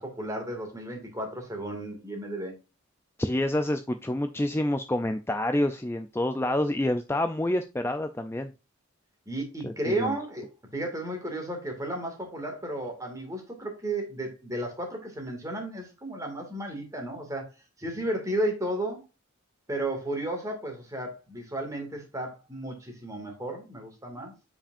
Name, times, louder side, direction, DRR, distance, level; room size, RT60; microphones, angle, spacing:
voice 1, 0.0-2.6 9.3-17.5 17.8-19.0 19.7-24.3, right 1 dB, 15° right, 2.1 m, -33 dB
voice 2, 3.2-8.5 9.6-10.1, left 1 dB, 10° left, 0.4 m, -28 dB
8.7 x 5.0 x 2.5 m
head